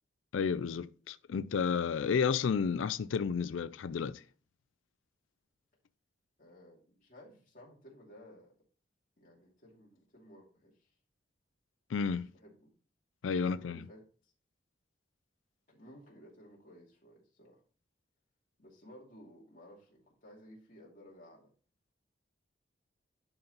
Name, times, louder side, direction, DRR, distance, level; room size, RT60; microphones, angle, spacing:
voice 1, 0.3-4.2 11.9-12.3 13.2-13.8, left 6 dB, 90° left, 0.4 m, -31 dB
voice 2, 6.4-8.5 9.2-10.9 12.2-12.7 13.5-14.3 15.7-17.6 18.6-21.5, equal, 45° left, 2.4 m, -56 dB
11.0 x 4.0 x 4.0 m
head